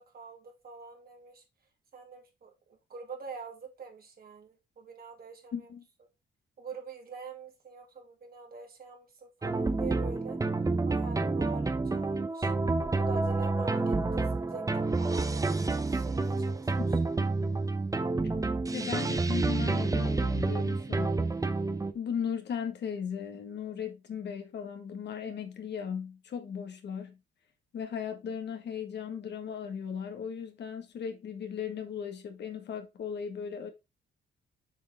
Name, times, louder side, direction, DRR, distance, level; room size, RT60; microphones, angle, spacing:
voice 1, 0.0-1.4 1.9-5.7 6.6-10.4 10.9-12.5 12.9-17.0, right 5 dB, 50° right, 2.5 m, -45 dB
voice 2, 5.5-5.8 16.8-16.9 18.7-21.2 21.9-27.2 27.7-33.7, left 7 dB, 60° left, 1.7 m, -37 dB
sound 1, 9.4-21.9, right 3 dB, 15° right, 0.8 m, -29 dB
7.3 x 4.8 x 3.6 m
cardioid pair, 90°, 20 cm